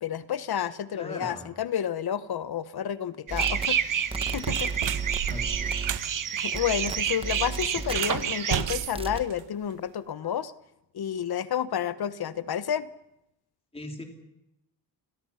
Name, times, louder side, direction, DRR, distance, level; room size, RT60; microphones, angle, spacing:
voice 1, 0.0-4.0 4.3-4.7 6.3-10.5 10.9-12.9, left 9 dB, 55° left, 15 dB, 1.1 m, -30 dB
voice 2, 0.9-1.4 5.3-5.7 10.2-10.3 13.7-14.0, left 1 dB, 15° left, 4 dB, 3.3 m, -39 dB
sound 1, 3.3-6.2 6.5-8.2 8.6-9.3, right 4 dB, 10° right, 1.2 m, -35 dB
sound 2, 3.3-8.6, right 8 dB, 45° right, 1.1 m, -29 dB
sound 3, 3.6-3.8 4.3-6.1 7.8-9.9, right 11 dB, 85° right, 1.2 m, -34 dB
29.5 x 22.0 x 5.8 m, 0.86 s
wide cardioid pair, 175°, 44 cm